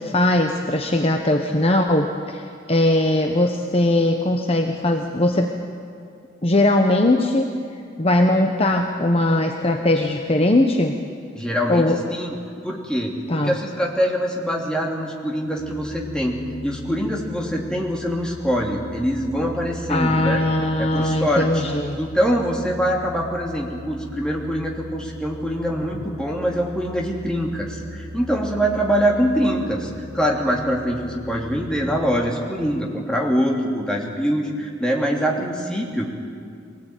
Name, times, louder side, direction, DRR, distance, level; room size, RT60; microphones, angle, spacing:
voice 1, 0.0-5.5 6.4-7.5 8.0-11.0 11.7-12.0 13.3-13.6 19.9-22.0, left 1 dB, 30° left, 4 dB, 1.1 m, -20 dB
voice 2, 11.3-11.8 12.1-12.4 12.6-20.4 20.8-21.6 22.0-36.1, equal, 5° left, -2 dB, 2.9 m, -24 dB
sound 1, 15.6-32.3, left 1 dB, 40° right, 7.9 m, -38 dB
23.0 x 19.0 x 9.3 m, 2.4 s
head